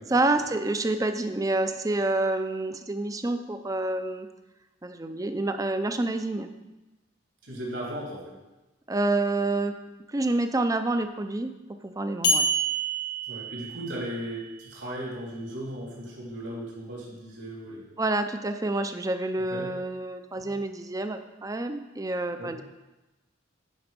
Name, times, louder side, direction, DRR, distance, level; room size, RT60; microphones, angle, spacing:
voice 1, 0.1-4.3 4.8-6.5 8.9-9.7 10.1-11.5 11.8-12.4 18.0-22.6, right 2 dB, 20° right, 8 dB, 0.5 m, -28 dB
voice 2, 7.4-8.3 13.3-17.8 19.5-19.7 20.4-20.5 22.4-22.5, right 1 dB, 75° right, -5 dB, 3.3 m, -36 dB
sound 1, 12.2-14.3, right 2 dB, 70° left, 1.6 m, -27 dB
10.0 x 5.2 x 5.2 m, 1.1 s
head